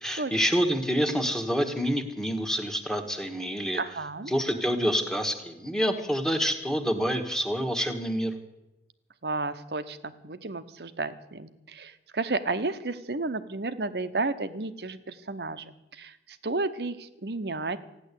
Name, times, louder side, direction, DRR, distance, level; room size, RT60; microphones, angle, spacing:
voice 1, 0.0-3.8 4.3-8.3, equal, 5° left, 5 dB, 1.4 m, -27 dB
voice 2, 3.8-4.3 9.2-17.8, right 3 dB, 65° right, 13 dB, 0.9 m, -32 dB
15.0 x 10.0 x 8.3 m, 0.95 s
head